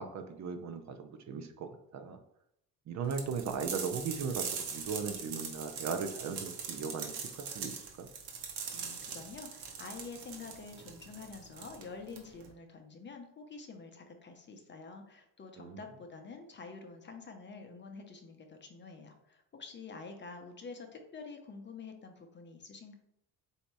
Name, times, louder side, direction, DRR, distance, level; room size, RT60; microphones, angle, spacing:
voice 1, 0.0-2.2 2.9-7.7 8.0-8.1 15.6-15.8, right 5 dB, 45° right, 7 dB, 0.5 m, -38 dB
sound 1, 3.1-12.5, right 6 dB, 90° right, 1.0 m, -41 dB
voice 2, 8.7-22.9, left 4 dB, 30° left, 4 dB, 0.6 m, -48 dB
4.1 x 2.8 x 4.6 m, 0.77 s
cardioid pair, 125°, 38 cm